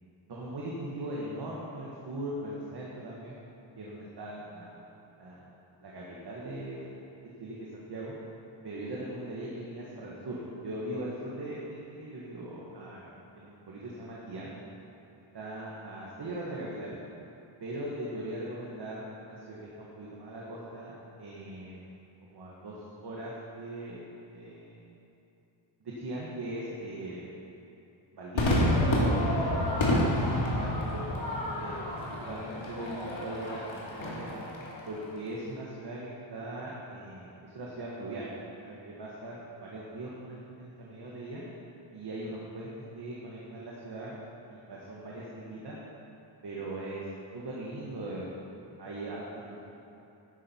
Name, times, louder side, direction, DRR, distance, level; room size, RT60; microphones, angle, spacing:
voice 1, 0.3-3.3 3.8-4.8 5.2-5.4 5.8-7.0 7.4-8.1 8.6-14.5 15.3-17.0 17.6-21.9 22.2-24.8 25.8-27.3 28.1-31.1 31.6-31.9 32.3-34.3 34.9-38.3 38.6-41.4 41.9-44.2 44.5-45.8 46.4-47.0 47.3-48.3 48.8-49.7, right 1 dB, 60° right, -5 dB, 1.7 m, -40 dB
Crowd / Fireworks, 28.4-34.9, left 1 dB, 85° left, 2.5 m, -29 dB
13.0 x 10.0 x 4.5 m, 2.8 s
wide cardioid pair, 165°, 46 cm